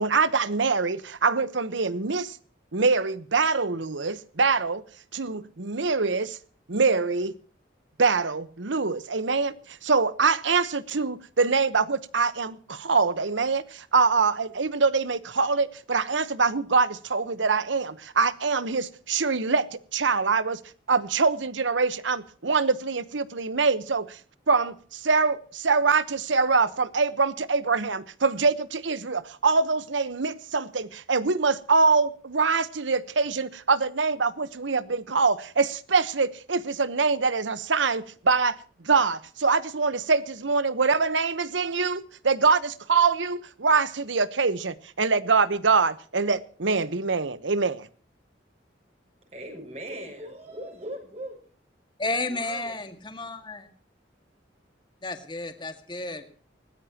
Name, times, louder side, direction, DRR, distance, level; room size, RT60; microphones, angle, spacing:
voice 1, 0.0-2.4 2.7-4.8 5.1-6.4 6.7-7.3 8.0-20.6 20.9-24.2 24.5-38.6 38.8-47.9, right 4 dB, 85° right, 1.1 m, -24 dB
voice 2, 49.2-51.4 52.3-52.7, right 1 dB, 35° right, 6.2 m, -39 dB
voice 3, 52.0-53.7 55.0-56.3, left 2 dB, 25° left, 1.9 m, -32 dB
20.5 x 18.5 x 2.9 m
head